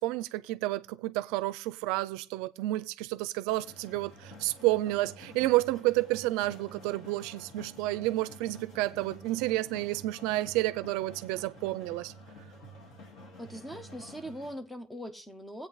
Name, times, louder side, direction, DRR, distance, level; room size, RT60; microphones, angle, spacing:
voice 1, 0.0-12.1, right 18 dB, 75° right, 0.5 m, -30 dB
sound 1, 3.5-14.5, equal, 50° left, 2.1 m, -50 dB
voice 2, 13.4-15.7, equal, 5° left, 0.7 m, -41 dB
20.0 x 8.4 x 3.3 m
cardioid pair, 165°, 0 cm